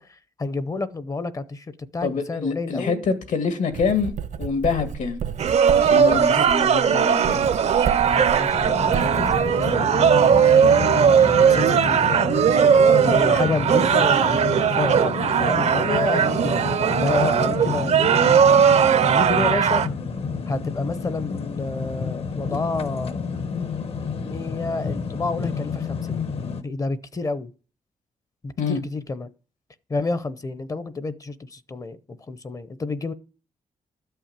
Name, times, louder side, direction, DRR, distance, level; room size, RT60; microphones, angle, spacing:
voice 1, 0.0-1.7 1.9-3.0 6.2-6.4 8.0-12.3 12.9-14.4 14.7-16.7 16.9-18.5 19.1-19.8 20.5-23.1 24.2-27.5 28.4-29.3 29.9-32.0 32.3-33.1, left 3 dB, 25° left, 0.7 m, -30 dB
voice 2, 2.0-4.1 4.4-5.2 5.7-7.4 28.6-28.8, left 5 dB, 75° left, 2.3 m, -25 dB
Writing, 3.7-9.7, right 8 dB, 80° right, 1.1 m, -32 dB
sound 1, 5.4-19.9, right 7 dB, 55° right, 0.7 m, -18 dB
sound 2, 8.5-26.6, left 5 dB, 50° left, 1.0 m, -29 dB
13.0 x 5.7 x 8.9 m
wide cardioid pair, 160°, 13 cm